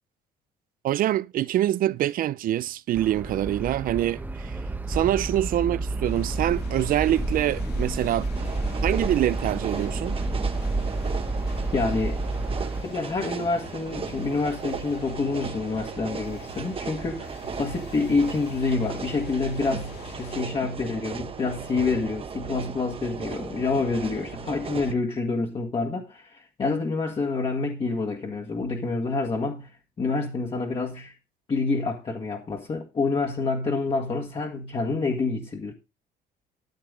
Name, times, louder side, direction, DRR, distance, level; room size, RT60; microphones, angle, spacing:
voice 1, 0.8-4.6 4.9-8.3 8.8-10.2, right 13 dB, 55° right, 0.5 m, -25 dB
sound 1, 2.9-12.8, right 2 dB, 10° right, 0.9 m, -30 dB
sound 2, 6.0-20.4, left 7 dB, 75° left, 1.6 m, -46 dB
sound 3, 8.3-24.9, right 6 dB, 35° right, 1.1 m, -36 dB
voice 2, 11.7-12.2 12.8-29.7 30.0-31.1 31.5-35.7, left 3 dB, 35° left, 1.7 m, -27 dB
13.5 x 6.8 x 3.9 m
cardioid pair, 110°, 17 cm